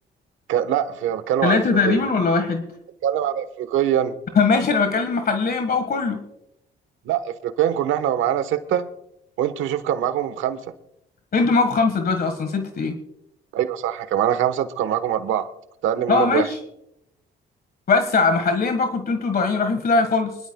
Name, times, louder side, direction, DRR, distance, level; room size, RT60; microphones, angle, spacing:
voice 1, 0.5-2.0 3.0-4.1 7.1-8.9 9.4-10.6 13.5-15.5 15.8-16.4, right 10 dB, 85° right, 11 dB, 1.2 m, -23 dB
voice 2, 1.4-2.6 4.3-6.2 11.3-13.0 16.1-16.6 17.9-20.4, left 4 dB, 50° left, 8 dB, 1.5 m, -20 dB
24.5 x 11.5 x 2.2 m, 0.80 s
cardioid pair, 90°, 20 cm